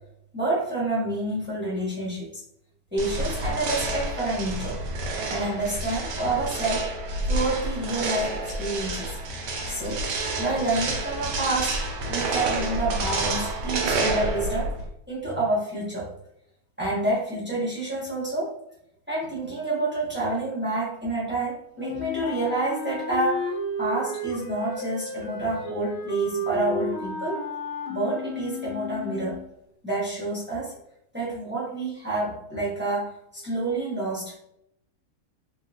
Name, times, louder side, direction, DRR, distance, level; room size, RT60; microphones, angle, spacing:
voice 1, 0.3-2.3 2.9-4.8 5.3-6.9 7.2-9.1 9.7-10.1 10.4-14.7 15.1-16.1 16.8-18.6 19.1-27.4 27.9-29.4 29.8-30.7 31.1-34.3, right 2 dB, 15° right, -7 dB, 0.4 m, -28 dB
sound 1, 3.0-14.9, right 2 dB, 70° right, 1.1 m, -29 dB
Wind instrument woodwind instrument, 21.8-29.5, left 1 dB, 85° left, 1.5 m, -33 dB
3.6 x 2.3 x 2.7 m, 0.76 s
omnidirectional pair, 2.2 m